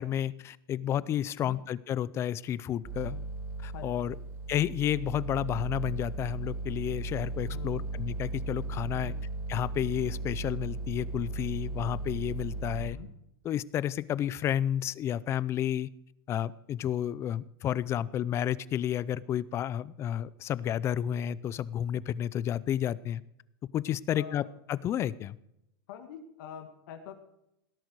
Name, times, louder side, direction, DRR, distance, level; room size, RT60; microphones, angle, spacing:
voice 1, 0.0-3.2 3.6-4.2 4.5-9.1 9.5-13.0 13.4-15.9 16.3-23.2 23.7-24.4 24.7-25.4, left 10 dB, 20° left, 19 dB, 0.4 m, -31 dB
sound 1, 2.8-12.9, right 2 dB, 25° right, 3.6 m, -36 dB
voice 2, 3.7-4.1 7.5-7.8 8.9-9.2 12.8-13.1 24.1-24.5 25.9-27.2, left 8 dB, 60° left, 5 dB, 2.0 m, -45 dB
18.0 x 10.5 x 4.7 m, 0.81 s
supercardioid pair, 160°, 12 cm